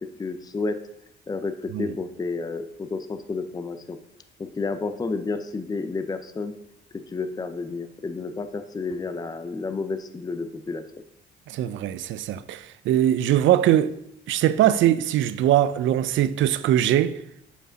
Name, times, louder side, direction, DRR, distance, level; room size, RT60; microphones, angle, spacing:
voice 1, 0.2-0.7 1.3-4.0 4.4-6.6 7.1-10.8, left 3 dB, 20° left, 0.5 m, -30 dB
voice 2, 11.5-13.9 14.3-17.2, right 12 dB, 75° right, 0.5 m, -21 dB
5.1 x 4.9 x 6.2 m
cardioid pair, 90°, 20 cm